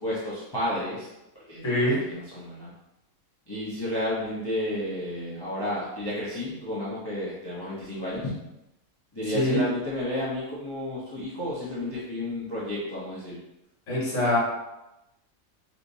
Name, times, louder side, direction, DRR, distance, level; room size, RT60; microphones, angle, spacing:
voice 1, 0.0-1.1 1.5-2.7 3.5-8.4 9.1-13.4, left 1 dB, 20° left, -9 dB, 0.9 m, -32 dB
voice 2, 1.6-2.0 9.3-9.6 13.9-14.4, left 1 dB, 60° left, -4 dB, 1.7 m, -23 dB
4.9 x 3.0 x 2.7 m, 0.92 s
omnidirectional pair, 1.5 m